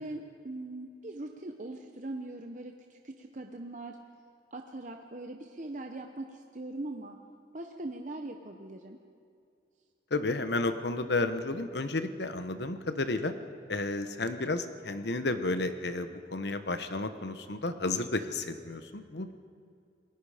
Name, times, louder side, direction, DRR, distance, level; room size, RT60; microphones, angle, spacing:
voice 1, 0.0-4.0 4.5-7.2 7.5-9.0, right 2 dB, 45° right, 3 dB, 0.9 m, -41 dB
voice 2, 10.1-13.3 13.7-19.3, left 2 dB, 70° left, 10 dB, 1.1 m, -32 dB
28.0 x 19.5 x 5.0 m, 2.4 s
head